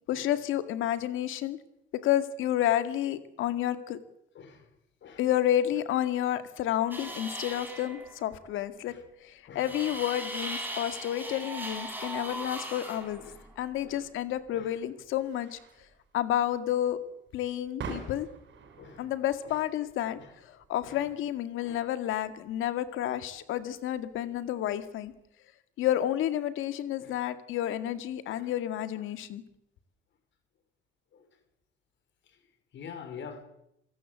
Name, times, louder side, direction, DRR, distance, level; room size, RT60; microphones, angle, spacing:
voice 1, 0.1-1.6 2.0-4.0 5.2-8.9 9.2-13.2 13.6-15.6 16.1-17.0 17.3-18.3 19.0-20.2 20.7-25.1 25.8-29.4, left 12 dB, 90° left, 2.1 m, -30 dB
sound 1, 6.9-8.3 9.6-13.9, right 1 dB, 10° right, 7.0 m, -39 dB
sound 2, 13.9-25.2, right 5 dB, 70° right, 5.8 m, -49 dB
voice 2, 32.7-33.4, left 6 dB, 70° left, 4.4 m, -45 dB
27.0 x 17.5 x 8.4 m
cardioid pair, 90°, 20 cm